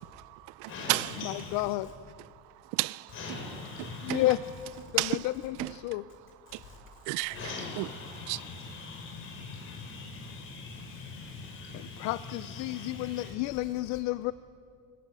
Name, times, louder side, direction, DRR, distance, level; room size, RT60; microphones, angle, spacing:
voice 1, 0.0-1.1 2.2-3.1 3.8-4.3 4.8-5.3 5.6-6.0 6.5-7.4 7.8-7.9 8.3-8.4, right 23 dB, 90° right, 0.6 m, -33 dB
voice 2, 0.7-1.7 3.1-4.7 6.6-6.8 7.3-13.6, left 4 dB, 40° left, 6.5 m, -42 dB
voice 3, 1.2-1.9 4.0-4.4 4.9-5.2 5.4-6.0 11.7-14.3, left 17 dB, 65° left, 0.7 m, -31 dB
29.0 x 19.0 x 8.3 m
cardioid pair, 170°, 31 cm